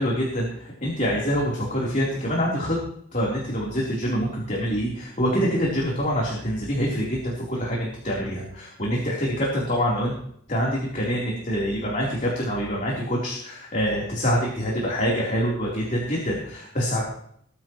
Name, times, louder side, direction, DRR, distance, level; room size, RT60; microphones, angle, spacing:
voice 1, 0.0-2.8 3.1-10.1 10.5-17.0, equal, 35° left, -4 dB, 3.8 m, -25 dB
21.5 x 14.0 x 3.2 m, 0.67 s
head